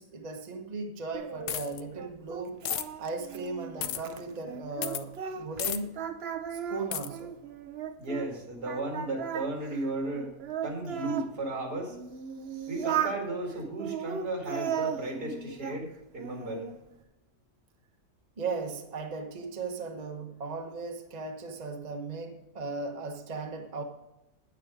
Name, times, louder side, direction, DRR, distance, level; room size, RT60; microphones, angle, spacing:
voice 1, 0.0-2.6 3.0-6.0 6.5-7.4 18.4-23.8, right 3 dB, 30° right, 1.0 m, -37 dB
Singing, 1.1-5.7 5.9-8.3 8.7-11.3 11.9-13.2 13.8-15.8 16.2-16.8, right 8 dB, 55° right, 0.8 m, -36 dB
sound 1, 1.5-1.8 2.7-2.8 3.8-4.0 4.8-5.0 5.6-5.8 6.9-7.1, left 11 dB, 90° left, 1.2 m, -32 dB
voice 2, 8.0-10.3 10.6-12.0 12.7-15.9 16.1-16.7, right 2 dB, 90° right, 2.8 m, -34 dB
9.5 x 9.0 x 5.0 m
omnidirectional pair, 1.6 m